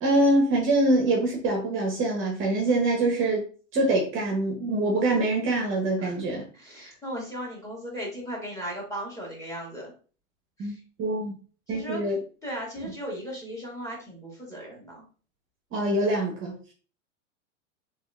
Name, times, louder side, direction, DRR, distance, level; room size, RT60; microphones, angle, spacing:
voice 1, 0.0-3.4 3.7-6.4 10.6-11.3 11.7-12.2 15.7-16.6, right 2 dB, 30° right, 1 dB, 0.9 m, -24 dB
voice 2, 6.5-9.9 10.6-10.8 11.7-12.1 12.4-15.0, equal, 10° left, -3 dB, 1.6 m, -37 dB
3.5 x 3.3 x 2.3 m, 0.38 s
hypercardioid pair, 120°, 39 cm